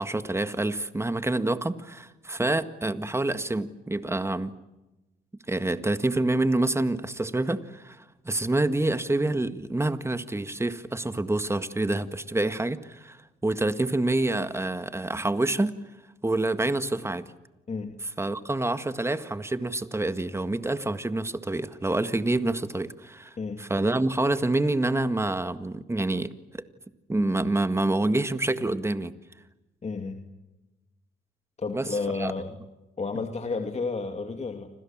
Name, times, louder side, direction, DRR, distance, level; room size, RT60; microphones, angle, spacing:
voice 1, 0.0-4.5 5.5-15.8 16.2-17.2 18.2-26.6 27.1-29.1 31.7-31.9 32.1-32.3, right 2 dB, 15° right, 11 dB, 1.8 m, -27 dB
voice 2, 29.8-30.2 31.6-32.5 33.0-34.7, left 4 dB, 35° left, 5 dB, 2.7 m, -31 dB
29.0 x 26.0 x 7.4 m, 1.0 s
cardioid pair, 90°, 20 cm